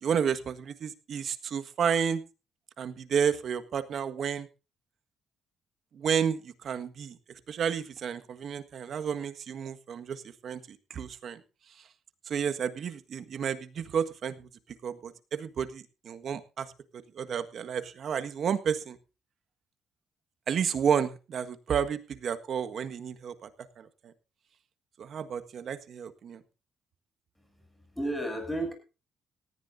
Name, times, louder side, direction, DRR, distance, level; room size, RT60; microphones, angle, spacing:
voice 1, 0.0-2.2 2.8-4.5 5.9-7.2 7.5-11.4 12.3-14.5 14.8-16.7 17.2-19.0 20.5-23.5 23.8-24.1 25.0-26.4, right 7 dB, 60° right, 9 dB, 1.6 m, -31 dB
voice 2, 27.4-28.7, right 1 dB, 5° left, 5 dB, 7.4 m, -34 dB
18.5 x 14.0 x 2.7 m, 0.32 s
cardioid pair, 90°, 0 cm